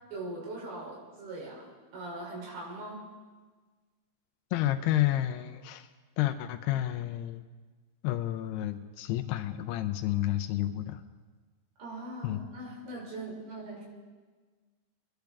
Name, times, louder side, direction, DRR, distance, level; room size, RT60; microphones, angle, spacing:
voice 1, 0.1-3.1 11.8-13.8, right 2 dB, 75° right, -3 dB, 5.5 m, -41 dB
voice 2, 4.5-5.9 6.2-7.4 8.0-11.0 12.2-12.4, left 13 dB, 80° left, 9 dB, 2.6 m, -30 dB
24.0 x 11.5 x 3.5 m, 1.4 s
omnidirectional pair, 4.8 m